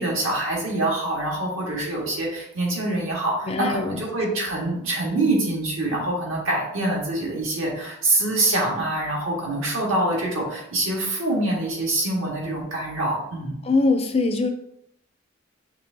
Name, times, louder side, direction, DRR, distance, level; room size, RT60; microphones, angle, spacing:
voice 1, 0.0-13.5, right 2 dB, 75° right, -3 dB, 1.5 m, -25 dB
voice 2, 3.5-4.0 13.6-14.5, left 3 dB, 30° left, 6 dB, 0.4 m, -22 dB
6.0 x 3.2 x 2.7 m, 0.77 s
head